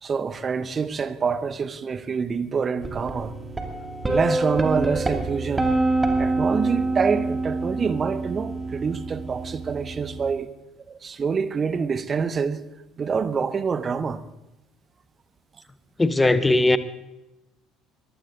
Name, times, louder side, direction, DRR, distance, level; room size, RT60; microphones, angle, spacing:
voice 1, 0.0-3.3 4.1-5.7 6.2-10.5 10.9-12.7 13.0-14.2, right 5 dB, 30° right, 1.0 m, -26 dB
sound 1, 2.8-10.3, right 2 dB, 15° right, 2.7 m, -26 dB
voice 2, 16.0-16.8, left 2 dB, 15° left, 1.1 m, -18 dB
23.0 x 15.5 x 3.9 m
figure-of-eight pair, 55°, 0 cm